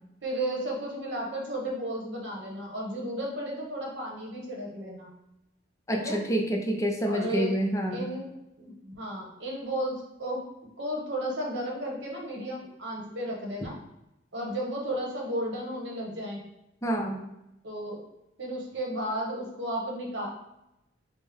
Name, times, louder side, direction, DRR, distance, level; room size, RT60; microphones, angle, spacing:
voice 1, 0.2-5.1 5.9-6.2 7.0-7.5 7.9-8.3 8.6-10.4 10.8-13.7 14.3-16.4 17.6-18.0 18.4-20.3, right 1 dB, 65° right, -2 dB, 1.0 m, -33 dB
voice 2, 5.9-8.1 16.8-17.2, equal, 15° left, 1 dB, 0.5 m, -27 dB
5.2 x 2.0 x 3.5 m, 0.88 s
head